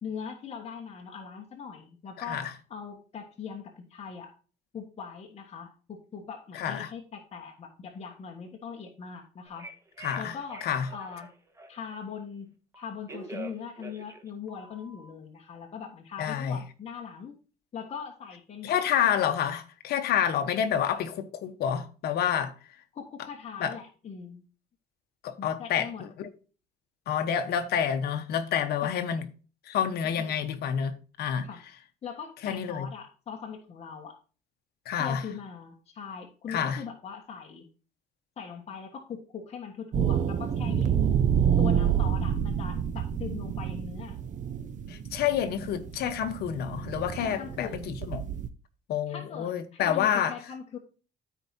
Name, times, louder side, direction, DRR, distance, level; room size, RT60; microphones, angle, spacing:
voice 1, 0.0-4.3 4.7-9.7 10.2-10.6 10.9-11.3 11.7-17.4 17.7-18.8 22.9-24.4 25.4-26.1 28.8-29.0 30.1-30.4 31.4-31.6 32.0-34.2 35.0-37.7 38.4-41.1 41.6-44.2 47.2-47.9 49.1-50.8, left 6 dB, 40° left, 1.6 m, -41 dB
voice 2, 6.5-6.9 10.0-10.9 16.2-16.6 18.6-22.5 23.6-23.7 25.2-26.3 27.1-29.2 29.6-31.5 32.4-32.9 34.9-35.2 36.5-36.8 44.9-48.3 48.9-50.4, left 9 dB, 70° left, 1.1 m, -28 dB
Telephone, 9.5-12.0 12.7-15.1, right 2 dB, 15° right, 1.3 m, -45 dB
sound 1, 39.9-48.5, right 8 dB, 50° right, 0.8 m, -28 dB
13.5 x 4.7 x 2.8 m
cardioid pair, 110°, 17 cm